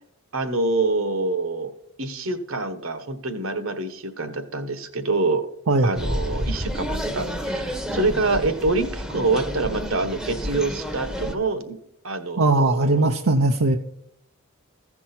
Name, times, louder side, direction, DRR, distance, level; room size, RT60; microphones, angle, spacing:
voice 1, 0.3-1.7 2.0-5.5 5.8-11.8 12.0-13.1, right 3 dB, 65° right, 10 dB, 1.2 m, -26 dB
sound 1, 5.9-11.3, equal, ahead, 0.8 m, -30 dB
voice 2, 12.4-13.8, right 2 dB, 85° right, 4 dB, 0.7 m, -19 dB
15.0 x 6.1 x 4.3 m, 0.75 s
head